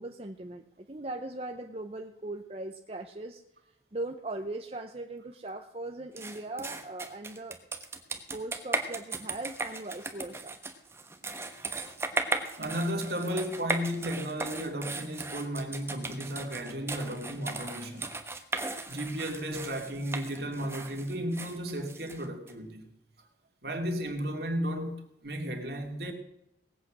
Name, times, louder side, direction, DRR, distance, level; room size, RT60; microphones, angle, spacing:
voice 1, 0.0-3.4 3.9-7.7 8.3-10.6, right 2 dB, 35° right, 0.8 m, -39 dB
sound 1, 6.2-22.5, right 2 dB, 15° right, 1.2 m, -37 dB
voice 2, 12.6-18.1 18.9-22.9 23.6-26.1, equal, 60° right, 2.4 m, -34 dB
19.5 x 8.4 x 6.1 m
head